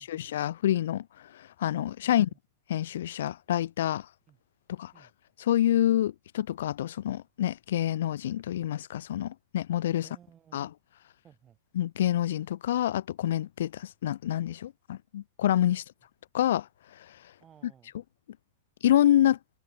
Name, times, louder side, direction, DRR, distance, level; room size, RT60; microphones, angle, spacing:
voice 1, 0.0-2.3 2.7-4.1 4.7-4.9 5.4-10.1 10.5-10.7 11.8-15.8 16.3-16.7 16.9-17.2 18.8-19.4, left 12 dB, 75° left, 0.6 m, -27 dB
voice 2, 2.0-2.4 4.3-4.4 4.9-5.1 10.0-10.7 11.2-11.6 15.7-15.8 17.4-17.9, right 9 dB, 20° right, 7.1 m, -58 dB
supercardioid pair, 160°, 0 cm